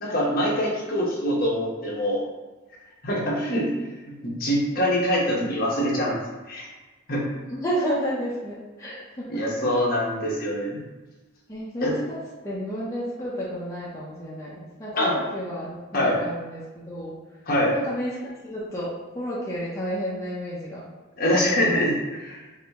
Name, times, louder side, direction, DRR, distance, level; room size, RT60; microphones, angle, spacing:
voice 1, 0.0-2.2 3.0-3.7 4.0-6.2 6.5-6.7 7.1-7.2 9.3-10.8 11.8-11.9 15.0-15.2 15.9-16.2 17.5-17.7 21.2-22.4, equal, 45° left, -4 dB, 1.1 m, -24 dB
voice 2, 7.5-9.6 11.5-17.2 17.7-18.2 18.4-20.9 21.4-21.9, equal, 15° left, -8 dB, 0.7 m, -31 dB
4.8 x 2.7 x 3.5 m, 1.2 s
head